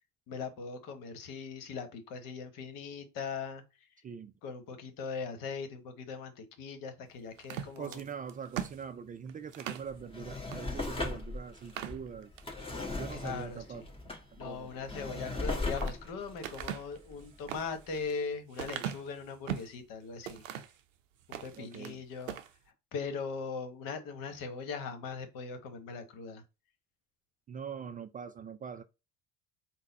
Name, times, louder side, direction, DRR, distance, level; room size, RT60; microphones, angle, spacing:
voice 1, 0.3-3.9 4.4-8.0 13.2-13.9 14.4-20.4 21.3-22.4 22.9-26.4, left 5 dB, 60° left, 1.2 m, -40 dB
voice 2, 4.0-4.3 7.8-12.3 12.9-13.8 14.3-14.7 21.6-22.0 27.5-28.8, right 7 dB, 25° right, 0.3 m, -43 dB
sound 1, 7.4-9.9 10.5-10.6 11.0-11.1 11.6-12.5 13.0-13.4 15.2-16.0 16.4-19.8 20.2-20.8 21.2-22.0 22.2-22.5, right 10 dB, 90° right, 0.5 m, -41 dB
Drawer open or close, 9.9-17.6 18.1-18.2, left 2 dB, 15° left, 1.4 m, -38 dB
3.9 x 2.2 x 4.0 m
hypercardioid pair, 65°, 37 cm